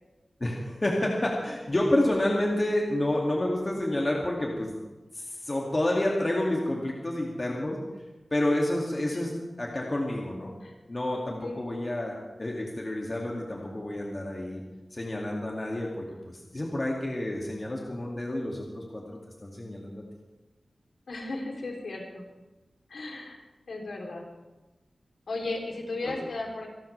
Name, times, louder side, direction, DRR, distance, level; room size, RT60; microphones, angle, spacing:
voice 1, 0.4-4.8 5.1-7.8 8.3-10.5 10.9-14.6 14.9-20.0 26.1-26.2, left 1 dB, 35° left, -2 dB, 2.4 m, -29 dB
voice 2, 21.1-22.2 22.9-23.4 23.7-24.2 25.3-26.7, left 2 dB, 90° left, 0 dB, 3.3 m, -35 dB
26.5 x 12.0 x 3.4 m, 1.1 s
wide cardioid pair, 70°, 0 cm